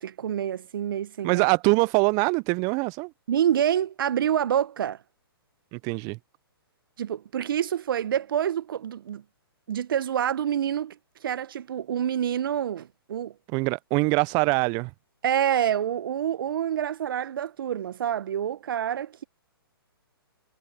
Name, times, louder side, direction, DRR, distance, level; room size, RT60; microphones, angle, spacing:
voice 1, 0.0-1.5 3.3-5.0 7.0-9.2 9.7-11.0 11.2-13.3 15.2-19.2, right 9 dB, 60° right, 1.3 m, -27 dB
voice 2, 1.2-3.1 5.7-6.2 13.5-14.9, right 29 dB, 30° right, 0.8 m, -23 dB
hypercardioid pair, 125°, 13 cm